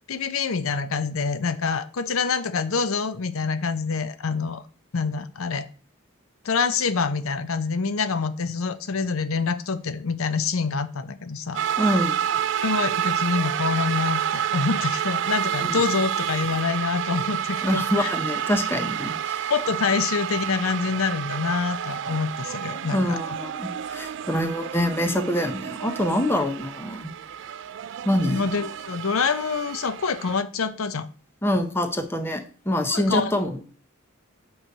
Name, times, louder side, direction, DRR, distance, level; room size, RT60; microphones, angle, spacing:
voice 1, 0.1-4.6 4.9-5.7 6.4-11.6 12.5-18.1 19.1-19.2 19.5-23.2 28.2-31.1 32.9-33.3, left 5 dB, 80° left, 12 dB, 0.6 m, -26 dB
sound 1, 11.5-30.4, right 9 dB, 60° right, 0.3 m, -29 dB
voice 2, 11.8-12.2 15.6-15.8 17.6-19.5 22.9-27.1 28.0-28.5 31.4-33.6, left 1 dB, 10° left, 6 dB, 0.8 m, -25 dB
8.8 x 3.2 x 6.6 m, 0.39 s
head